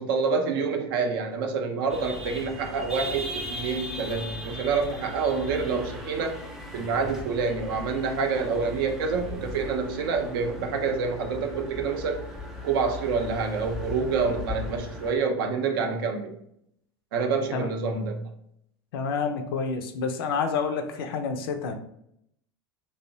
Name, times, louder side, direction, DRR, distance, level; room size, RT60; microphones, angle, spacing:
voice 1, 0.0-6.5 6.7-12.2 12.6-16.4 17.1-18.3, right 5 dB, 60° right, 4 dB, 0.5 m, -27 dB
sound 1, 1.9-15.1, left 1 dB, 5° right, 0.5 m, -38 dB
voice 2, 18.9-21.7, left 5 dB, 65° left, 7 dB, 0.4 m, -28 dB
2.7 x 2.0 x 2.7 m, 0.72 s
figure-of-eight pair, 80°, 13 cm